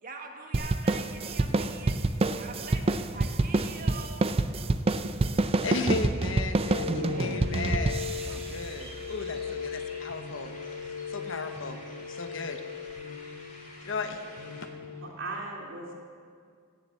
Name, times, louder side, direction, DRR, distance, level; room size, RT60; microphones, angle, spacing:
voice 1, 0.0-2.0 2.3-4.3, right 4 dB, 45° right, 3 dB, 1.5 m, -43 dB
sound 1, 0.5-9.4, right 2 dB, 30° right, 0.4 m, -28 dB
voice 2, 5.6-10.5 11.1-11.8 12.1-12.6 13.8-14.2, left 3 dB, 70° left, 7 dB, 1.0 m, -35 dB
sound 2, 6.6-15.1, left 7 dB, 55° left, 2.6 m, -39 dB
voice 3, 6.8-7.5 15.0-15.9, right 2 dB, 75° right, -1 dB, 2.5 m, -37 dB
sound 3, 7.0-14.7, left 1 dB, 40° left, 2.7 m, -49 dB
16.5 x 6.9 x 7.7 m, 2.2 s
head